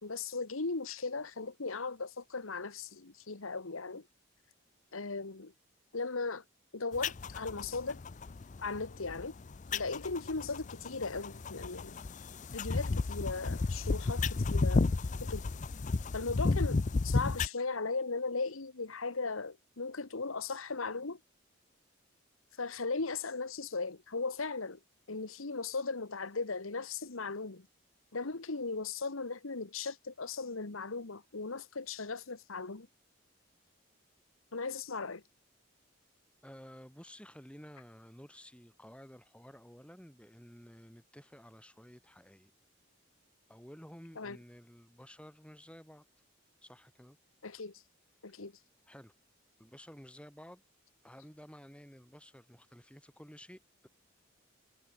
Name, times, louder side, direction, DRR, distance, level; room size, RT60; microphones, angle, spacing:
voice 1, 0.0-4.0 4.9-5.5 5.9-6.4 6.7-8.0 8.6-9.3 9.7-11.9 12.5-14.8 15.3-15.5 16.1-21.2 22.6-24.8 25.1-27.7 28.1-32.9 34.5-35.2 44.2-44.4 47.4-47.7 48.2-48.5, left 4 dB, 90° left, 1.4 m, -37 dB
sound 1, 6.9-17.5, left 3 dB, 35° left, 0.4 m, -33 dB
voice 2, 36.4-42.5 43.5-46.0 46.6-47.2 48.9-49.1 49.6-50.6 51.0-53.9, equal, 5° left, 5.2 m, -53 dB
head